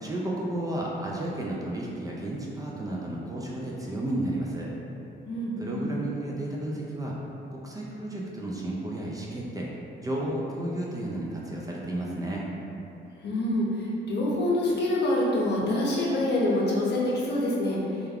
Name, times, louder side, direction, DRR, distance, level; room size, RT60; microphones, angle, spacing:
voice 1, 0.0-4.7 5.6-7.1 7.5-9.7 10.0-12.4, right 1 dB, 20° right, -4 dB, 0.3 m, -32 dB
voice 2, 5.3-5.9 13.2-17.8, left 1 dB, 60° left, -5 dB, 0.7 m, -26 dB
2.3 x 2.2 x 3.3 m, 2.8 s
cardioid pair, 90°, 20 cm